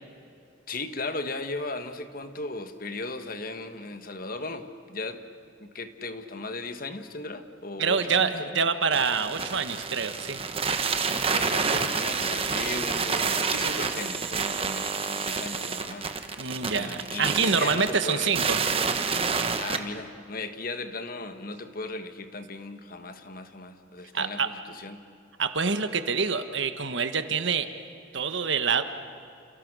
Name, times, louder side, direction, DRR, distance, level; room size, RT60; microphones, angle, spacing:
voice 1, 0.7-5.2 5.6-8.6 11.3-16.1 16.7-18.5 19.6-25.0, left 3 dB, 45° left, 8 dB, 1.5 m, -37 dB
voice 2, 7.8-10.4 16.4-18.6 24.1-24.5 25.4-27.7 28.1-28.8, right 5 dB, 65° right, 9 dB, 1.4 m, -26 dB
sound 1, 8.9-19.8, right 5 dB, 30° right, 1.3 m, -28 dB
29.0 x 29.0 x 6.3 m, 2.5 s
head